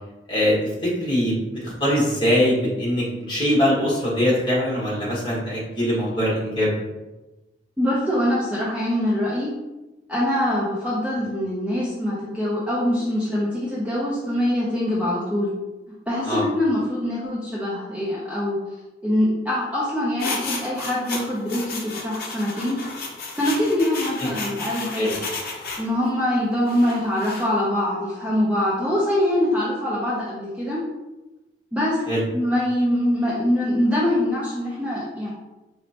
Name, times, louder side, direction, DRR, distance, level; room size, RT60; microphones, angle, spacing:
voice 1, 0.8-6.7 16.2-16.4 25.0-25.1 32.1-32.2, equal, 25° left, -6 dB, 1.4 m, -22 dB
voice 2, 7.8-9.5 10.1-15.5 16.1-18.6 19.0-22.8 23.4-25.2 25.8-30.8 31.7-32.0 32.3-35.3, left 1 dB, 5° right, -7 dB, 0.6 m, -23 dB
sound 1, 20.2-25.9 26.7-27.5, left 3 dB, 55° left, 0.7 m, -32 dB
4.2 x 3.1 x 2.9 m, 1.1 s
head